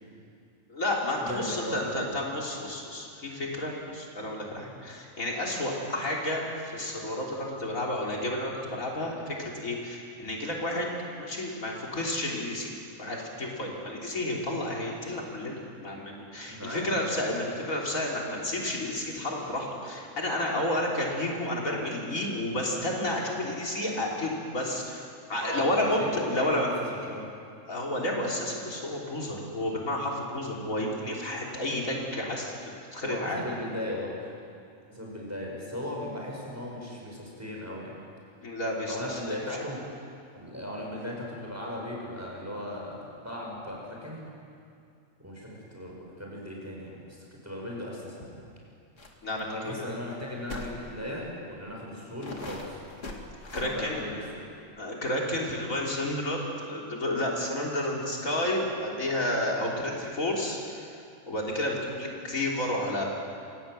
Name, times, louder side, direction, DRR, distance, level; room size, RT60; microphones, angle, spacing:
voice 1, 0.7-10.9 11.2-12.7 13.0-26.7 27.7-33.4 38.4-39.4 49.2-49.9 53.5-54.0 54.8-60.9 61.3-63.0, left 1 dB, 85° left, -2 dB, 3.9 m, -31 dB
voice 2, 1.2-2.0 16.5-16.9 25.4-27.3 33.0-34.3 34.9-38.0 38.9-39.9 40.3-44.3 45.2-47.2 47.4-48.4 49.4-52.8 53.6-54.4, left 1 dB, 10° right, -3 dB, 5.8 m, -37 dB
sound 1, 49.0-49.1 49.4-49.5 50.5-50.8 51.5-51.6 52.2-53.7, left 2 dB, 65° left, 2.8 m, -39 dB
27.0 x 17.5 x 7.8 m, 2.4 s
omnidirectional pair, 1.4 m